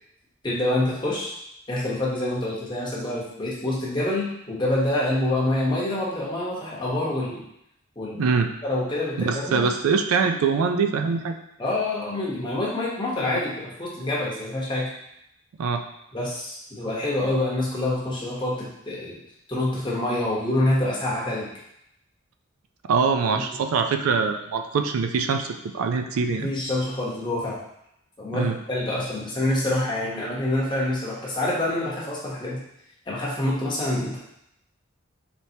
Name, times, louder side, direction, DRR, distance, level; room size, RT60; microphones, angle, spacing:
voice 1, 0.4-1.3 1.7-7.4 8.0-8.3 8.6-9.7 11.6-14.9 16.1-19.2 19.5-21.5 23.3-23.4 26.3-27.6 28.2-32.6 33.1-34.2, left 1 dB, 20° left, -5 dB, 0.9 m, -26 dB
voice 2, 8.1-8.5 9.2-11.4 13.3-13.4 15.6-15.8 22.9-25.5 25.7-26.5 28.3-28.6, right 5 dB, 80° right, 6 dB, 0.4 m, -23 dB
4.3 x 3.4 x 2.7 m, 0.79 s
head